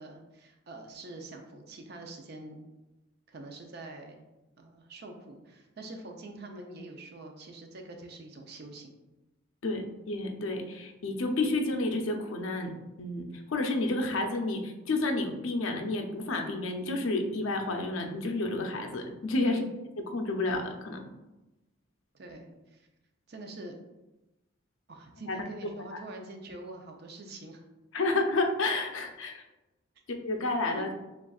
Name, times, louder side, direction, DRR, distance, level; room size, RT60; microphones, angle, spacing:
voice 1, 0.0-2.6 3.3-4.3 4.6-8.9 19.4-19.7 22.1-22.9 23.3-23.8 24.9-27.6 30.8-30.9, right 2 dB, 50° right, 3 dB, 0.6 m, -45 dB
voice 2, 9.6-12.7 13.0-19.6 20.1-21.0 25.3-25.4 25.9-26.0 27.9-29.4 30.1-30.9, left 2 dB, 75° left, 3 dB, 0.6 m, -30 dB
7.1 x 2.5 x 2.3 m, 1.0 s
head